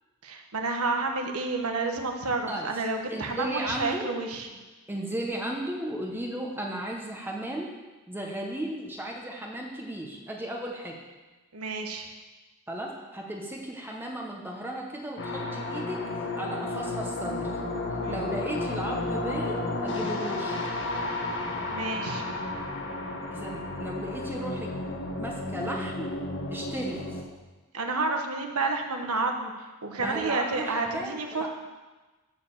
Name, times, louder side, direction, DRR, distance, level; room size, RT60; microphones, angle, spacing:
voice 1, 0.2-4.5 11.5-12.1 18.0-18.2 21.7-22.2 27.7-29.5 29.8-31.5, right 3 dB, 80° right, 3 dB, 1.3 m, -30 dB
voice 2, 3.1-4.1 4.9-7.7 8.1-11.0 12.7-17.6 18.1-20.6 23.3-24.7 25.0-26.1 26.5-27.0 30.0-31.5, right 1 dB, 10° right, 0 dB, 1.1 m, -35 dB
sound 1, 15.2-27.2, left 2 dB, 55° left, 1.4 m, -32 dB
13.5 x 4.9 x 7.3 m, 1.2 s
head